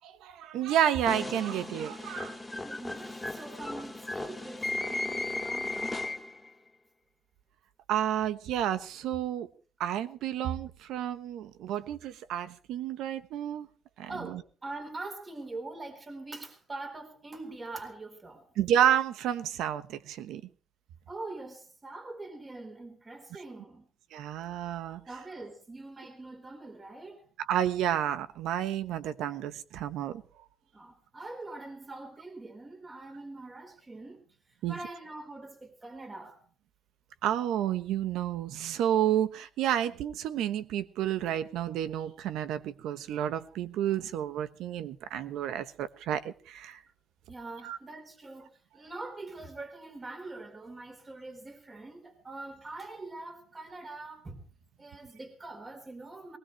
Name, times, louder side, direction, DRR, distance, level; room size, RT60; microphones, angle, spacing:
voice 1, 0.2-2.3 7.9-9.5 9.8-13.7 14.0-14.1 18.6-20.4 24.1-25.0 27.5-30.2 34.6-34.8 37.2-46.8 47.6-47.8, right 10 dB, 90° right, 1.2 m, -30 dB
sound 1, 1.1-6.5, left 2 dB, 10° left, 2.3 m, -36 dB
voice 2, 2.4-6.1 14.1-18.5 21.1-23.9 25.1-27.2 30.7-34.2 34.7-36.4 47.3-54.5 54.8-56.4, right 2 dB, 25° right, 4.1 m, -43 dB
19.5 x 19.5 x 3.3 m
cardioid pair, 90°, 0 cm